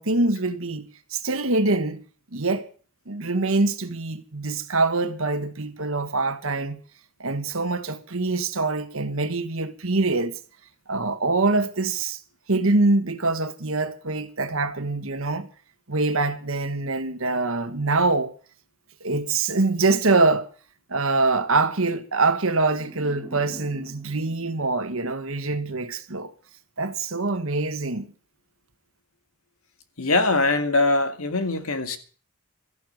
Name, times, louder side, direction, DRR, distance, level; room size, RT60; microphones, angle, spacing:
voice 1, 0.0-2.0 2.3-2.7 3.1-6.8 7.2-10.4 10.9-12.2 12.5-15.5 15.9-18.3 19.0-20.5 20.9-26.3 26.8-28.1, right 3 dB, 65° right, 1.6 m, -24 dB
sound 1, 22.7-25.7, right 1 dB, 10° right, 2.9 m, -45 dB
voice 2, 30.0-32.0, left 2 dB, 75° left, 2.1 m, -22 dB
14.0 x 11.0 x 6.6 m
head